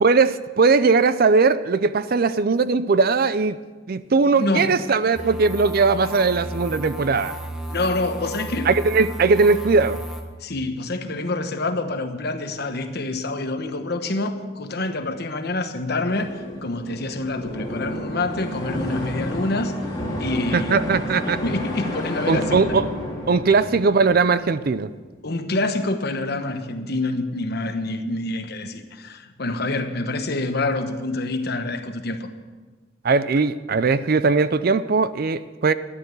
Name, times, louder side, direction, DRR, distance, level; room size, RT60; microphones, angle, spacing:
voice 1, 0.0-3.6 3.9-7.4 8.7-10.0 20.5-21.4 22.3-22.8 23.3-24.9 33.0-35.7, right 4 dB, 50° right, 0.5 m, -19 dB
voice 2, 4.4-4.7 7.7-8.7 10.4-19.7 20.2-22.8 25.2-32.3, left 2 dB, 55° left, 1.1 m, -27 dB
sound 1, 5.1-10.2, right 1 dB, 5° right, 1.2 m, -33 dB
sound 2, 16.1-24.9, left 1 dB, 20° left, 3.1 m, -31 dB
13.0 x 10.5 x 6.9 m
head